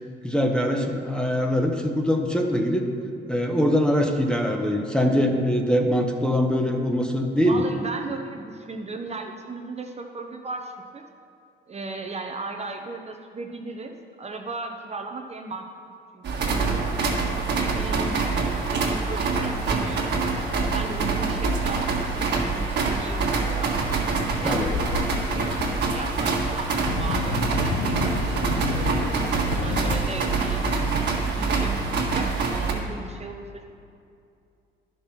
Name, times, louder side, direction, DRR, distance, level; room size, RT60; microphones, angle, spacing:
voice 1, 0.2-2.9 3.3-7.6 24.4-24.7 30.8-30.9, equal, 5° left, 3 dB, 0.9 m, -23 dB
voice 2, 7.5-11.0 11.7-15.7 16.1-20.1 20.6-23.8 24.4-25.5 25.9-28.9 29.5-30.9 31.2-33.6, right 3 dB, 35° right, 4 dB, 0.8 m, -36 dB
sound 1, 16.2-32.7, right 4 dB, 60° right, 1.6 m, -25 dB
sound 2, 24.5-26.0 26.8-30.0, left 6 dB, 85° left, 0.6 m, -30 dB
11.0 x 5.4 x 6.0 m, 2.5 s
cardioid pair, 90°, 20 cm